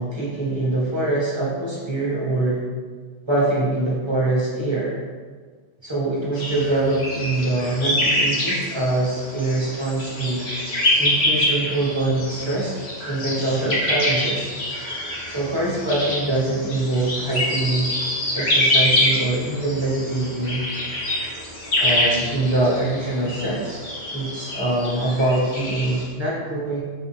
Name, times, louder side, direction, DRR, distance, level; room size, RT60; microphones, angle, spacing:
voice 1, 0.0-2.6 3.3-5.0 5.8-10.4 11.0-12.7 13.0-14.5 15.3-17.9 18.3-20.6 21.8-23.8 24.1-26.8, right 2 dB, 20° right, -6 dB, 1.7 m, -24 dB
sound 1, 6.3-26.0, left 1 dB, 55° left, 1.9 m, -25 dB
8.4 x 4.0 x 3.4 m, 1.5 s
omnidirectional pair, 1.3 m